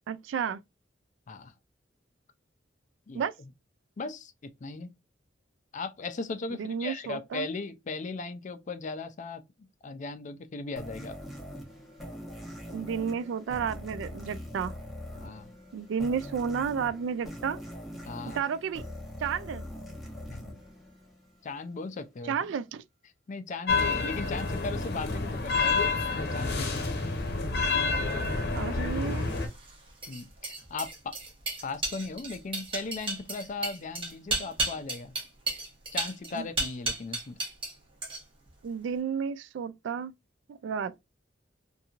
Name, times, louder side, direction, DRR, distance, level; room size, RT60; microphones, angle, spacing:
voice 1, 0.1-0.6 3.1-3.3 6.5-7.5 12.7-14.8 15.7-17.6 18.3-18.8 19.2-19.7 22.3-22.8 28.5-29.3 36.3-36.5 38.6-40.1 40.5-41.0, right 6 dB, 75° right, 0.3 m, -32 dB
voice 2, 3.1-3.5 4.0-4.9 5.7-11.2 15.1-15.5 18.1-18.4 20.3-20.6 21.4-22.4 23.3-26.9 30.1-31.2 31.6-35.1 35.9-37.4, left 3 dB, 40° left, 0.4 m, -38 dB
sound 1, 10.8-21.5, equal, ahead, 1.0 m, -42 dB
sound 2, 23.7-29.5, left 4 dB, 60° left, 0.8 m, -28 dB
sound 3, 29.2-37.7 38.0-38.5, right 2 dB, 30° right, 1.0 m, -34 dB
2.9 x 2.6 x 2.4 m
head